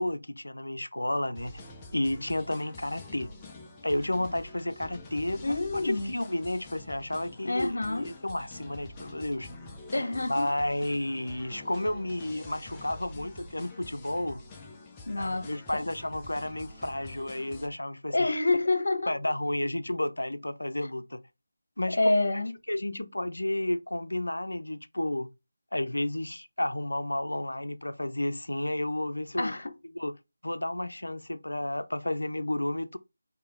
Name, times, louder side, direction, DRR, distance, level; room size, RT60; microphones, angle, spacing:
voice 1, 0.0-1.6 1.9-3.3 3.8-9.5 10.3-14.4 15.2-18.3 19.1-21.2 21.8-22.0 22.3-22.4 22.7-25.3 25.7-29.6 29.9-30.1 30.4-33.0, left 1 dB, 85° left, 0.5 m, -32 dB
sound 1, 1.3-17.7, left 2 dB, 15° left, 0.6 m, -46 dB
voice 2, 5.4-6.1 7.4-8.1 9.9-10.5 15.1-15.5 18.1-19.2 22.0-22.5 29.4-29.7, left 2 dB, 70° left, 1.0 m, -27 dB
4.8 x 2.8 x 3.6 m
figure-of-eight pair, 165°, 0 cm